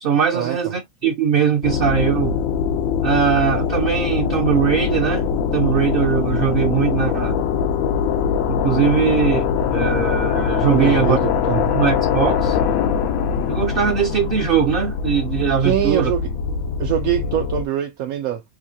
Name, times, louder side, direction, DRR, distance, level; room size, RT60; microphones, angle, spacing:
voice 1, 0.0-2.4 3.0-5.3 5.5-7.4 8.5-11.2 11.7-12.6 13.5-16.1, right 7 dB, 60° right, 0.6 m, -20 dB
sound 1, 1.6-17.7, left 7 dB, 85° left, 1.0 m, -22 dB
voice 2, 10.7-11.8 15.6-16.3 16.8-18.4, right 11 dB, 85° right, 1.0 m, -23 dB
3.7 x 2.6 x 2.6 m
omnidirectional pair, 1.4 m